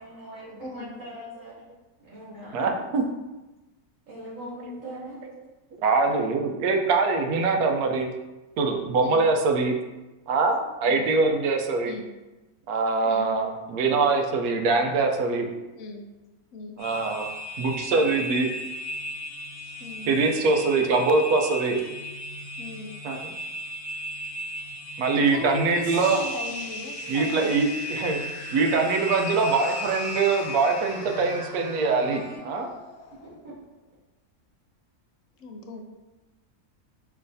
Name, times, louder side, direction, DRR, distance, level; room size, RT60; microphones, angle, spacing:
voice 1, 0.0-1.6 2.0-2.8 4.1-5.2 33.2-33.5, equal, 60° right, -7 dB, 1.3 m, -41 dB
voice 2, 0.6-0.9 9.0-9.2 10.8-11.1 11.8-12.1 13.0-13.3 15.8-16.0 16.5-16.8 17.9-18.1 19.6-20.2 22.6-23.0 25.3-27.6 35.4-35.8, left 3 dB, 65° left, 3 dB, 0.9 m, -38 dB
voice 3, 2.5-3.0 5.8-8.1 8.6-9.7 10.3-11.9 12.7-15.5 16.8-17.3 17.6-18.5 20.1-21.8 23.0-23.3 25.0-26.2 27.1-28.2 28.5-32.7, right 4 dB, 85° right, 3 dB, 1.1 m, -23 dB
sound 1, 16.8-32.4, left 1 dB, 35° left, 1.2 m, -36 dB
sound 2, 25.8-33.9, left 4 dB, 85° left, 1.1 m, -43 dB
5.6 x 3.1 x 2.6 m, 1.1 s
omnidirectional pair, 1.6 m